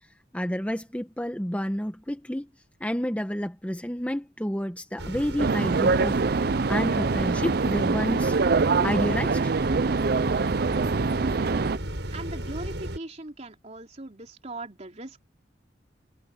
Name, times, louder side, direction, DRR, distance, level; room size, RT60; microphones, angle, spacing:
voice 1, 0.3-2.5 2.8-8.4 8.8-9.5, equal, 10° left, 1.2 m, -30 dB
sound 1, 5.0-13.0, right 1 dB, 75° right, 6.6 m, -35 dB
sound 2, 5.4-11.8, right 4 dB, 60° right, 0.5 m, -24 dB
voice 2, 12.1-15.2, right 2 dB, 40° right, 3.6 m, -40 dB
head